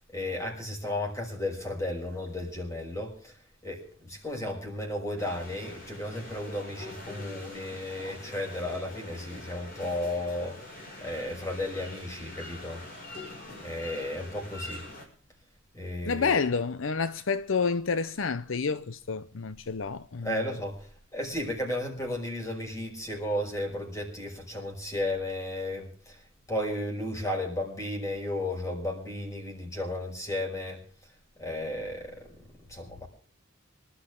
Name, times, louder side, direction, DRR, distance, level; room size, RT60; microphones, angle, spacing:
voice 1, 0.1-3.4 3.6-10.7 11.0-12.8 13.6-14.8 15.7-16.4 20.2-20.9 21.1-26.2 26.5-30.8 31.4-32.3 32.7-33.1, left 1 dB, 15° left, 6.2 m, -34 dB
sound 1, 5.2-15.1, left 2 dB, 45° left, 6.3 m, -44 dB
voice 2, 16.1-20.3, left 5 dB, 70° left, 0.7 m, -29 dB
25.5 x 12.5 x 3.8 m
head